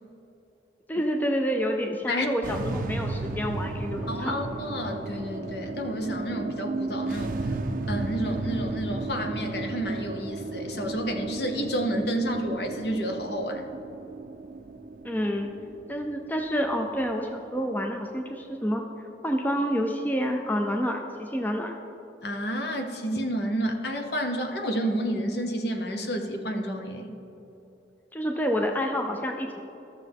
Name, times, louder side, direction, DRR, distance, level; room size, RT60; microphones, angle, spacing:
voice 1, 0.9-4.4 15.0-15.5 15.9-18.8 19.2-21.7 28.1-29.6, equal, 10° left, 3 dB, 0.4 m, -28 dB
sound 1, 2.4-18.8, right 2 dB, 45° right, 0.4 m, -34 dB
voice 2, 4.1-7.3 7.9-13.7 22.2-27.1, equal, 60° left, 4 dB, 0.9 m, -30 dB
14.0 x 6.5 x 3.5 m, 3.0 s
head